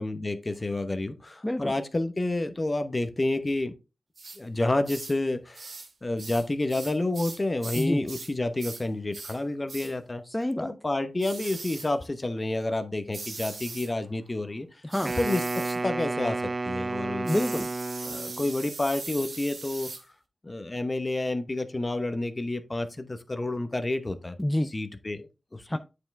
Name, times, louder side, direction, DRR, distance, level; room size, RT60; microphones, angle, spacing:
voice 1, 0.0-3.7 4.4-5.7 6.0-10.2 10.6-14.7 15.2-16.4 16.6-17.3 18.0-19.9 20.4-24.4 24.7-25.8, left 2 dB, 30° left, 1.0 m, -29 dB
voice 2, 1.4-1.8 7.8-8.0 10.3-10.7 14.8-15.1 17.2-17.7 24.4-24.7 25.7-25.8, left 1 dB, 15° left, 0.4 m, -28 dB
sound 1, 4.2-4.4 4.8-5.2 5.5-5.9 6.2-8.3 8.6-8.8 9.1-9.4 9.7-9.9 11.2-11.9 13.1-13.9 14.9-15.8 17.3-20.0, right 3 dB, 70° right, 1.6 m, -40 dB
Wind instrument woodwind instrument, 15.0-18.5, right 3 dB, 45° right, 0.5 m, -31 dB
8.5 x 4.8 x 3.4 m
cardioid pair, 60°, 0 cm